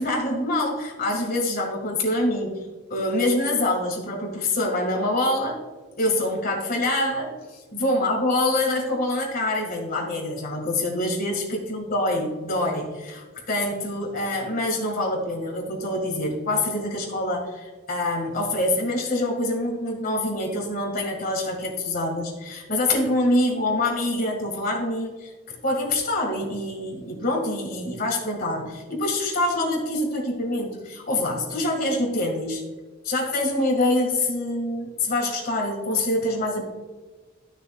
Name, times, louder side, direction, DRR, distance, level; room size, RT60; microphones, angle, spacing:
voice 1, 0.0-2.6 2.9-5.6 6.0-32.6 33.0-36.7, left 1 dB, 45° left, 0 dB, 1.9 m, -25 dB
12.5 x 6.2 x 2.3 m, 1.4 s
head